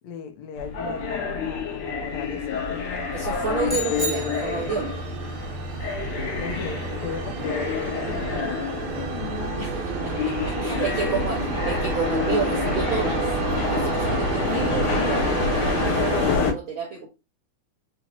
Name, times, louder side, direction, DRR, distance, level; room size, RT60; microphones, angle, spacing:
voice 1, 0.0-3.1 3.7-4.0 6.4-11.2 14.0-14.7, left 7 dB, 70° left, 1.9 m, -37 dB
sound 1, 0.6-16.5, left 4 dB, 90° left, 2.6 m, -27 dB
sound 2, 2.3-16.4, right 7 dB, 90° right, 2.2 m, -32 dB
voice 2, 3.1-5.0 9.6-13.3 13.6-15.3 15.7-17.1, right 5 dB, 60° right, 1.4 m, -30 dB
sound 3, 3.6-5.0, equal, ahead, 0.5 m, -31 dB
5.7 x 3.0 x 2.8 m
omnidirectional pair, 3.4 m